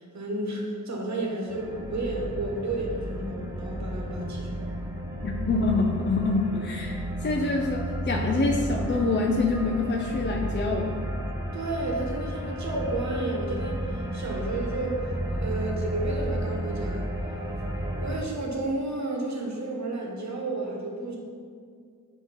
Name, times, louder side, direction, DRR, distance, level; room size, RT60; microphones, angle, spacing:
voice 1, 0.0-4.5 11.5-17.1 18.0-21.2, right 2 dB, 60° right, 0 dB, 1.2 m, -32 dB
sound 1, 1.5-18.2, right 1 dB, 10° right, 0.6 m, -32 dB
voice 2, 5.2-7.0 7.2-10.9, left 3 dB, 35° left, 0 dB, 0.5 m, -26 dB
8.0 x 2.9 x 5.6 m, 2.2 s
wide cardioid pair, 165°, 32 cm